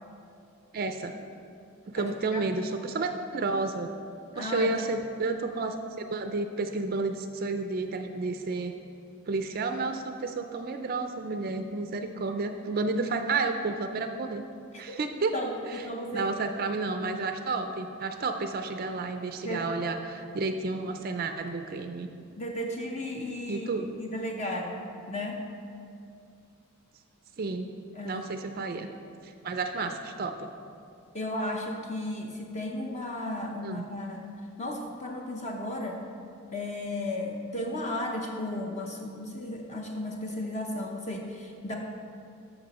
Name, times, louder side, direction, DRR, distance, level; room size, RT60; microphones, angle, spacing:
voice 1, 0.7-1.1 1.9-3.9 4.4-8.7 9.3-14.4 14.8-15.3 15.7-15.8 16.1-22.1 23.5-23.9 27.4-27.7 28.0-28.9 29.2-30.5 33.6-33.8, right 3 dB, 45° right, 7 dB, 0.4 m, -31 dB
voice 2, 1.9-2.4 4.3-4.7 14.7-15.0 15.3-16.3 19.4-19.7 22.4-25.4 27.9-28.3 31.1-34.3 34.6-36.0 36.5-41.7, left 1 dB, 30° left, 0 dB, 0.7 m, -34 dB
13.0 x 6.0 x 4.1 m, 2.5 s
head